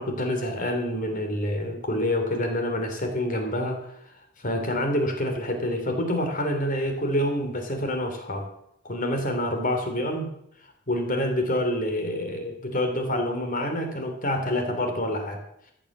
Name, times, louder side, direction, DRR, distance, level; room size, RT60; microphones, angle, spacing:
voice 1, 0.0-3.8 4.4-8.5 8.8-10.3 10.9-15.4, left 1 dB, 45° left, 4 dB, 3.3 m, -27 dB
15.0 x 8.7 x 7.4 m, 0.75 s
head